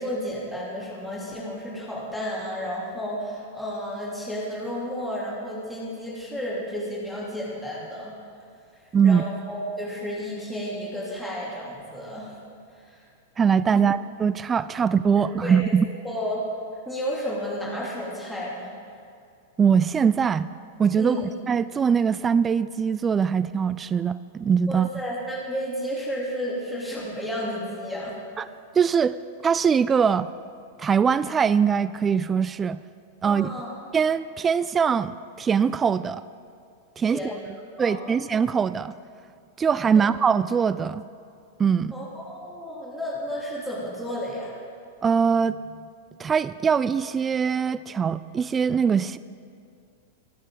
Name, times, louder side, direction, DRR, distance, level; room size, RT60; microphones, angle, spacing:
voice 1, 0.0-8.1 8.7-12.3 12.7-13.0 13.7-13.8 15.2-15.6 16.0-16.4 16.8-18.7 21.0-21.2 24.7-28.2 33.2-33.7 37.0-37.4 37.8-38.2 39.9-40.1 41.9-44.6, equal, ahead, -7 dB, 3.3 m, -32 dB
voice 2, 8.9-9.2 13.4-15.9 19.6-20.5 20.8-24.9 28.4-28.5 28.7-29.1 29.4-30.3 30.8-32.8 33.2-33.5 33.9-36.2 37.0-37.3 37.8-38.9 39.6-41.0 41.6-41.9 45.0-45.6 46.2-49.2, right 6 dB, 20° right, 16 dB, 0.3 m, -22 dB
23.5 x 8.7 x 3.9 m, 2.4 s
hypercardioid pair, 110°, 0 cm